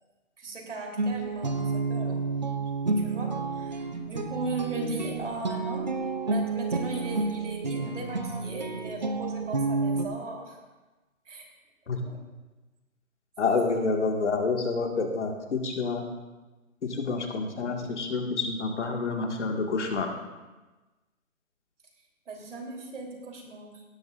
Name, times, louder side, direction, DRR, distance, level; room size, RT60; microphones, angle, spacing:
voice 1, 0.4-2.2 3.0-10.6 11.2-11.5 11.9-12.2 13.5-13.6 22.3-23.8, right 2 dB, 60° right, 1 dB, 3.4 m, -37 dB
Guitar, 1.0-10.1, right 3 dB, 35° right, 0.5 m, -30 dB
voice 2, 13.4-16.0 16.8-20.1, left 4 dB, 55° left, 2 dB, 1.8 m, -28 dB
18.0 x 12.5 x 2.5 m, 1.2 s
hypercardioid pair, 170°, 41 cm